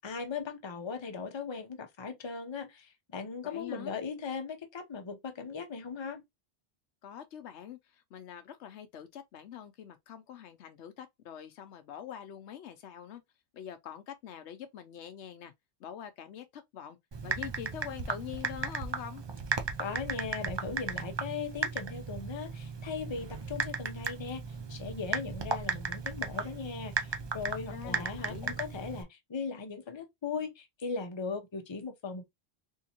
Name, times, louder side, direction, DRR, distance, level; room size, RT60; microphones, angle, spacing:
voice 1, 0.0-6.2 19.8-24.4 24.7-32.2, left 5 dB, 30° left, 0.7 m, -38 dB
voice 2, 3.4-4.0 7.0-13.2 13.5-15.5 15.8-17.0 17.2-19.2 27.7-28.6, left 9 dB, 90° left, 1.0 m, -44 dB
Typing, 17.1-29.0, right 5 dB, 35° right, 0.4 m, -36 dB
3.6 x 2.8 x 2.8 m
omnidirectional pair, 1.1 m